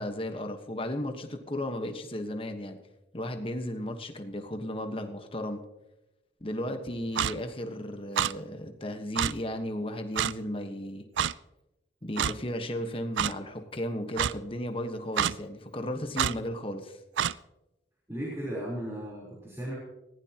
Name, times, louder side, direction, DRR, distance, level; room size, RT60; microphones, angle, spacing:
voice 1, 0.0-2.8 3.1-5.6 6.4-11.1 12.0-17.0, left 1 dB, 30° left, 6 dB, 1.3 m, -35 dB
Clock, 7.2-7.3 8.2-8.3 9.2-9.3 10.2-10.3 11.2-11.3 12.2-12.3 13.2-13.3 14.2-14.3 15.2-15.3 16.2-16.3 17.2-17.3, right 9 dB, 85° right, 0.4 m, -26 dB
voice 2, 18.1-19.7, equal, 15° right, -6 dB, 3.9 m, -36 dB
20.0 x 15.5 x 3.0 m, 0.96 s
head